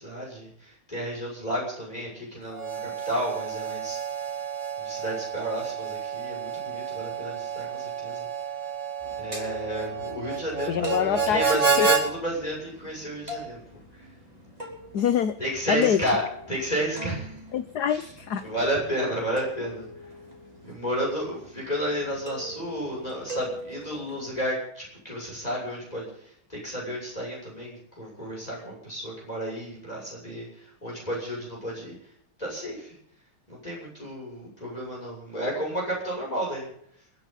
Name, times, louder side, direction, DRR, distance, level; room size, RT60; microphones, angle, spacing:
voice 1, 0.0-4.0 4.8-8.3 9.2-13.8 15.4-16.2 16.5-17.4 17.9-18.1 18.4-19.9 20.6-32.0 32.4-33.0 33.5-36.7, equal, 20° left, -3 dB, 7.1 m, -32 dB
Harmonica, 2.5-12.0, right 5 dB, 75° right, 4.0 m, -30 dB
sound 1, 9.0-24.3, equal, 20° right, 4.5 m, -42 dB
voice 2, 10.7-11.4 11.8-11.9 14.9-15.3 15.7-16.0 17.5-18.4, left 9 dB, 60° left, 12 dB, 1.2 m, -25 dB
29.5 x 10.5 x 4.1 m, 0.67 s
omnidirectional pair, 2.3 m